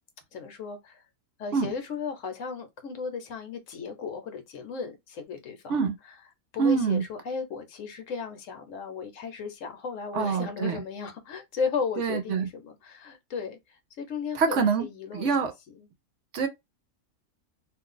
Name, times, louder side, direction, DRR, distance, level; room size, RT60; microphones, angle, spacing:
voice 1, 0.3-1.0 1.4-5.8 6.5-15.3 15.8-15.9, left 5 dB, 65° left, 1.1 m, -35 dB
voice 2, 6.6-7.0 10.1-10.8 12.0-12.5 14.3-14.9 15.1-15.5 16.3-16.5, right 5 dB, 65° right, 0.8 m, -25 dB
2.6 x 2.3 x 3.7 m
omnidirectional pair, 1.5 m